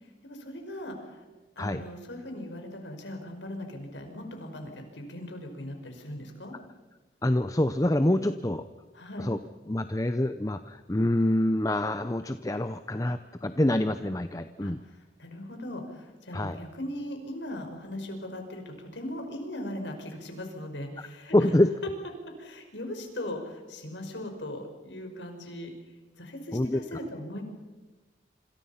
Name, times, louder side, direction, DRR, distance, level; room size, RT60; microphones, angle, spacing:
voice 1, 0.2-1.2 1.6-6.5 8.9-9.3 14.6-21.5 22.4-25.7 26.2-27.4, left 1 dB, 85° left, 4 dB, 5.3 m, -39 dB
voice 2, 7.2-8.6 9.2-9.4 9.7-14.8 16.3-16.6 21.3-21.7 26.5-27.0, left 1 dB, 20° left, 10 dB, 0.7 m, -26 dB
27.0 x 26.5 x 5.7 m, 1.2 s
head